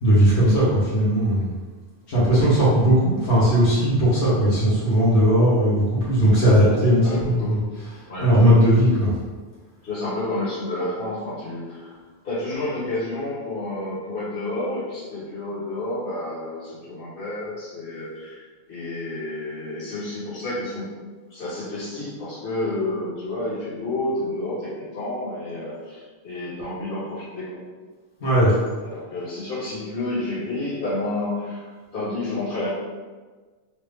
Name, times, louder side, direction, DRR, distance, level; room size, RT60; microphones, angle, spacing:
voice 1, 0.0-1.5 2.1-7.4 8.2-9.1 28.2-28.5, equal, 85° left, -9 dB, 1.3 m, -18 dB
voice 2, 7.0-7.7 8.1-8.3 9.8-12.0 12.2-21.0 21.3-27.6 28.8-32.7, left 2 dB, 55° left, -9 dB, 1.5 m, -30 dB
3.3 x 2.5 x 3.4 m, 1.4 s
omnidirectional pair, 1.1 m